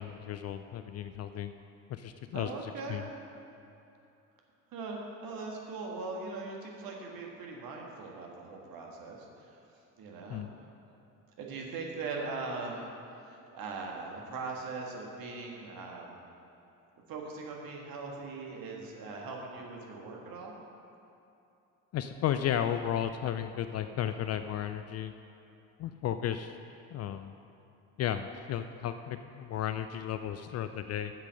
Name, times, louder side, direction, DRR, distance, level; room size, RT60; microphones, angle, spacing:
voice 1, 0.0-1.5 1.9-3.0 10.3-10.5 21.9-25.1 25.8-26.6 26.9-27.3 28.0-31.1, left 10 dB, 35° left, 9 dB, 0.4 m, -34 dB
voice 2, 2.3-3.1 4.7-9.6 10.0-10.5 11.4-12.9 13.2-16.2 17.1-20.6, right 3 dB, 50° right, -1 dB, 2.0 m, -40 dB
8.8 x 7.5 x 6.4 m, 2.8 s
hypercardioid pair, 60°, 44 cm